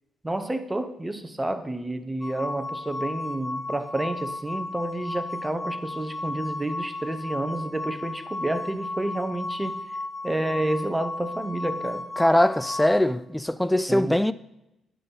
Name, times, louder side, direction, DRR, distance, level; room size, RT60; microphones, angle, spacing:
voice 1, 0.2-9.8 10.2-12.0 13.9-14.2, right 1 dB, 10° right, 0.7 m, -30 dB
sound 1, 2.2-12.9, left 2 dB, 25° left, 0.9 m, -34 dB
voice 2, 12.2-14.3, left 1 dB, 5° left, 0.3 m, -21 dB
9.6 x 5.3 x 4.0 m
cardioid pair, 90°, 0 cm